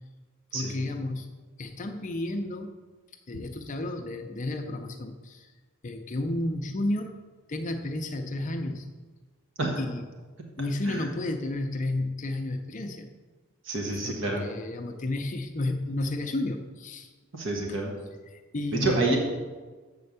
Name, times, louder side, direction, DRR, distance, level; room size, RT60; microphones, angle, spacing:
voice 1, 0.5-1.3 1.6-2.8 3.3-5.5 5.8-7.1 7.5-8.9 9.8-10.1 10.6-13.1 13.9-17.1 17.7-17.8 18.3-19.2, left 2 dB, 35° left, 5 dB, 0.5 m, -32 dB
voice 2, 13.7-14.4 17.3-17.9 18.8-19.2, right 2 dB, 60° right, 1 dB, 1.3 m, -28 dB
7.5 x 4.3 x 6.7 m, 1.4 s
head